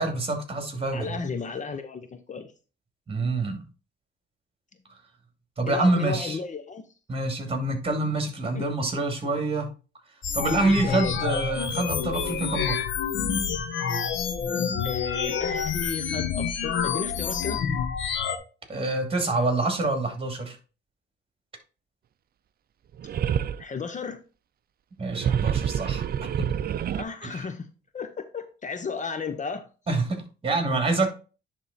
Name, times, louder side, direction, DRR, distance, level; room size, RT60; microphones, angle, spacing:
voice 1, 0.0-1.2 3.1-3.6 5.6-6.4 7.1-9.7 10.3-12.9 18.7-20.6 25.0-26.0 26.4-26.5 27.2-27.5 29.9-31.1, right 2 dB, 30° right, 5 dB, 2.6 m, -26 dB
voice 2, 0.9-2.5 5.7-6.9 8.4-8.7 10.8-11.2 14.8-17.6 23.6-24.2 26.9-29.6, left 5 dB, 40° left, 9 dB, 0.9 m, -34 dB
sound 1, 10.2-18.4, left 7 dB, 70° left, 1.3 m, -28 dB
sound 2, 23.0-23.6 25.0-27.0, right 9 dB, 50° right, 0.5 m, -27 dB
10.0 x 3.7 x 4.2 m, 0.34 s
cardioid pair, 90°, 20 cm